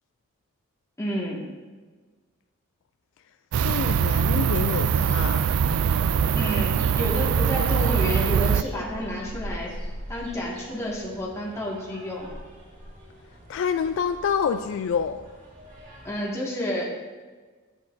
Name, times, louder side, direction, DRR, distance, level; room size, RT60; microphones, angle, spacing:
voice 1, 1.0-1.4 6.3-9.7 10.1-12.3 16.0-17.0, equal, 15° left, -4 dB, 1.8 m, -30 dB
sound 1, 3.5-8.6, right 7 dB, 85° right, 0.3 m, -22 dB
voice 2, 3.6-5.4 13.5-15.2, left 6 dB, 60° left, 9 dB, 0.3 m, -27 dB
sound 2, 4.7-16.2, equal, 40° right, 2.2 m, -43 dB
10.5 x 8.9 x 2.6 m, 1.4 s
head